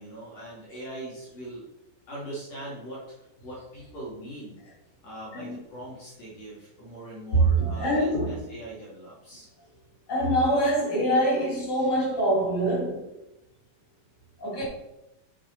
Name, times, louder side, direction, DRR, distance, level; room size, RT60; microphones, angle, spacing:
voice 1, 0.0-1.6 2.1-3.0 3.4-4.6 5.0-9.5, right 1 dB, 55° left, 3.6 m, -41 dB
voice 2, 7.3-8.4 10.1-13.1 14.4-14.6, right 1 dB, 25° left, 3.9 m, -24 dB
8.6 x 6.9 x 4.1 m
omnidirectional pair, 3.6 m